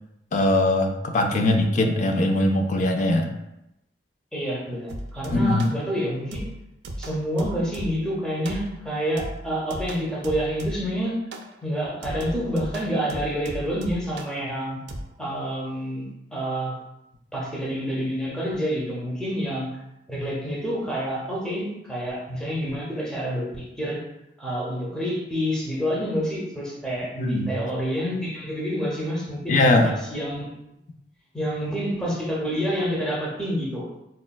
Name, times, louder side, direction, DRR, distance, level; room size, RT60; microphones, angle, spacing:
voice 1, 0.3-3.3 5.3-5.6 27.2-27.5 29.5-29.9, left 2 dB, 45° left, 4 dB, 0.3 m, -21 dB
voice 2, 4.3-6.5 7.0-11.2 11.6-14.8 15.2-16.8 17.3-19.7 20.1-24.0 24.4-30.5 31.3-33.9, equal, 5° left, -5 dB, 0.6 m, -28 dB
sound 1, 4.9-5.8 6.3-8.1 8.5-8.9 9.2-11.0 11.3-11.6 12.0-14.4 14.9-15.0, right 1 dB, 75° right, 0.4 m, -36 dB
4.1 x 2.1 x 2.2 m, 0.88 s
head